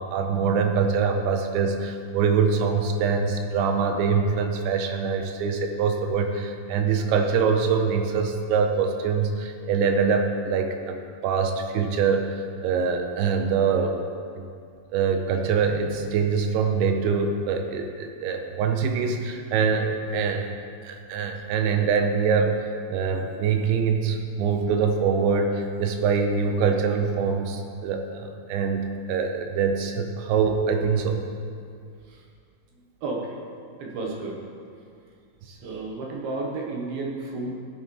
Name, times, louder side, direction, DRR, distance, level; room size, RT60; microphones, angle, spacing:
voice 1, 0.0-14.0 14.4-14.5 14.9-20.5 20.8-31.2, right 5 dB, 90° right, 4 dB, 3.1 m, -24 dB
voice 2, 32.7-33.4 33.8-34.4 35.4-37.5, right 3 dB, 65° right, -2 dB, 2.7 m, -32 dB
16.0 x 7.2 x 3.3 m, 2.3 s
omnidirectional pair, 5.2 m